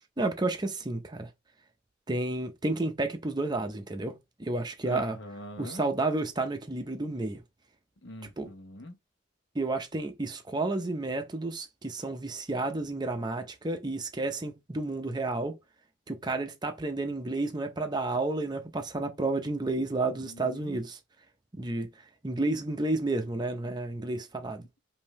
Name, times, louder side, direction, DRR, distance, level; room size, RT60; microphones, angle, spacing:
voice 1, 0.2-1.3 2.1-5.2 5.6-7.4 8.4-8.5 9.5-15.5 16.1-21.0 21.6-21.9 22.2-24.7, right 2 dB, 20° right, 0.6 m, -31 dB
voice 2, 4.8-5.8 8.0-8.9 20.1-20.8, left 1 dB, 65° left, 1.0 m, -43 dB
5.2 x 2.7 x 3.1 m
head